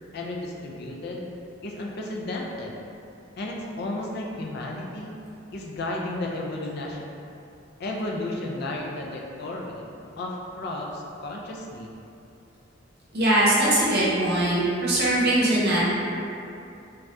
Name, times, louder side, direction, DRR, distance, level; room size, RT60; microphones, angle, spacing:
voice 1, 0.1-1.3 1.6-2.7 3.4-5.2 5.5-7.0 7.8-9.9 10.2-11.9, left 2 dB, 55° left, -1 dB, 0.4 m, -33 dB
voice 2, 13.1-15.9, right 1 dB, 60° right, -7 dB, 0.8 m, -21 dB
2.6 x 2.3 x 3.3 m, 2.6 s
head